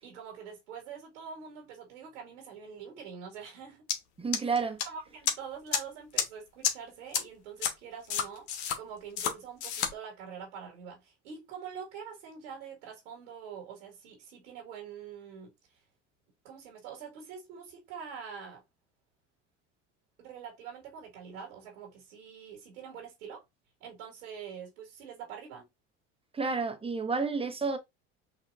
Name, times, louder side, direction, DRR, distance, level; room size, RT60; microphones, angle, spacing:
voice 1, 0.0-3.9 4.4-4.5 4.9-8.5 8.8-15.5 16.4-18.6 20.2-23.4 23.8-25.6, right 7 dB, 85° right, 1.9 m, -45 dB
sound 1, 3.9-4.0 4.3-4.8 5.3-5.4 5.7-5.8 6.2-6.3 6.6-6.7 7.1-7.2 7.6-7.7 8.1-8.8 9.2-9.3 9.6-9.9, left 8 dB, 75° left, 1.1 m, -29 dB
voice 2, 4.2-4.8 26.3-27.8, right 4 dB, 15° right, 1.0 m, -30 dB
5.8 x 2.8 x 2.5 m
hypercardioid pair, 80°, 36 cm